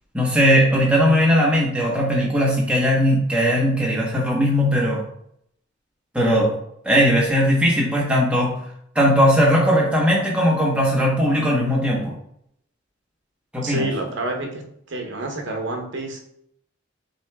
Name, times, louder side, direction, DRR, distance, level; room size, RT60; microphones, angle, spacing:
voice 1, 0.1-5.0 6.1-6.5 6.8-8.6 8.9-12.1 13.5-13.9, equal, 5° right, -4 dB, 1.0 m, -18 dB
voice 2, 13.6-14.6 14.9-16.2, right 2 dB, 65° right, 2 dB, 0.9 m, -28 dB
6.1 x 3.0 x 2.3 m, 0.71 s
head